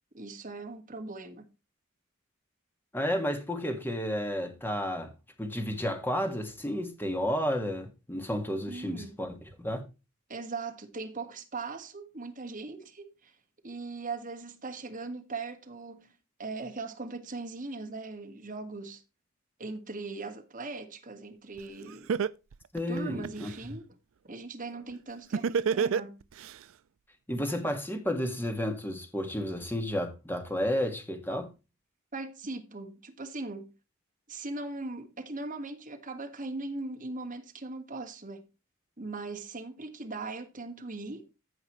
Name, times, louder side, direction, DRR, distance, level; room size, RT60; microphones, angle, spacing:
voice 1, 0.1-1.5 8.7-9.2 10.3-13.3 13.6-16.1 16.4-19.0 19.6-22.1 22.9-23.8 24.3-26.2 32.1-33.7 34.3-38.5 39.0-41.3, right 3 dB, 40° right, 1.6 m, -39 dB
voice 2, 2.9-5.1 5.4-9.8 22.7-23.5 27.3-31.5, equal, 10° left, 1.8 m, -32 dB
Laughter, 21.6-21.7 22.1-23.6 25.3-26.5, right 6 dB, 70° right, 0.4 m, -27 dB
15.0 x 5.8 x 3.1 m
head